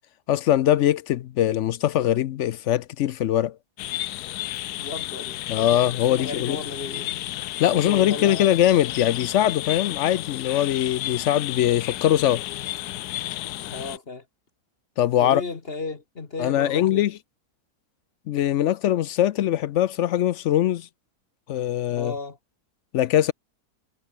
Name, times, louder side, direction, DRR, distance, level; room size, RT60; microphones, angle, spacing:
voice 1, 0.3-3.5 5.5-6.6 7.6-12.5 15.0-15.4 16.4-17.1 18.3-20.9 21.5-22.1 22.9-23.3, left 12 dB, 65° left, 0.7 m, -22 dB
sound 1, 3.8-14.0, left 15 dB, 85° left, 1.2 m, -32 dB
voice 2, 4.8-7.3 7.7-8.5 13.7-14.2 15.2-17.1 22.0-22.4, left 3 dB, 40° left, 1.7 m, -34 dB
omnidirectional pair, 1.6 m